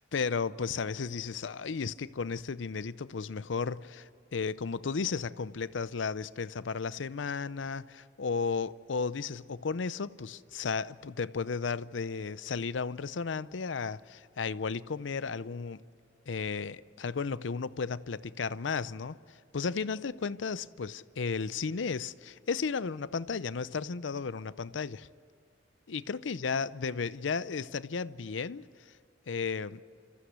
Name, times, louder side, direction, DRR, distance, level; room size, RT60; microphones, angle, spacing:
voice 1, 0.1-15.8 16.3-25.1 25.9-28.6 29.3-29.8, left 5 dB, 85° left, 0.6 m, -34 dB
30.0 x 14.5 x 8.1 m
head